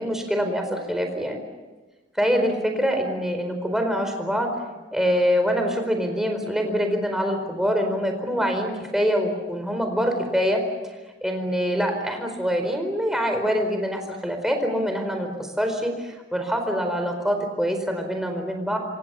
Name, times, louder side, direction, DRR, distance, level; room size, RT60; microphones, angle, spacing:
voice 1, 0.0-1.4 2.2-4.5 4.9-10.6 11.2-18.8, equal, 5° right, 4 dB, 4.5 m, -25 dB
27.0 x 26.0 x 7.1 m, 1.2 s
head